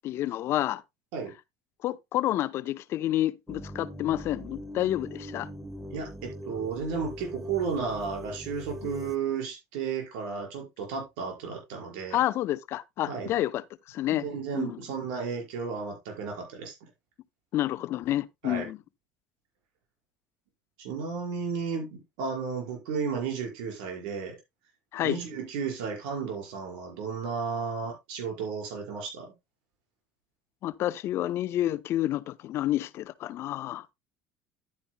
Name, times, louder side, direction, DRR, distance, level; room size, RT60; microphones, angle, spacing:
voice 1, 0.0-0.8 1.8-5.5 12.1-14.2 14.5-14.8 17.5-18.8 24.9-25.2 30.6-33.9, left 13 dB, 60° left, 0.6 m, -29 dB
sound 1, 3.5-9.2, equal, 5° right, 1.3 m, -41 dB
voice 2, 5.9-12.2 13.1-13.3 14.1-16.9 18.4-18.7 20.8-24.4 25.0-29.3, right 5 dB, 85° right, 5.1 m, -33 dB
11.0 x 9.7 x 2.2 m
supercardioid pair, 100°, 5 cm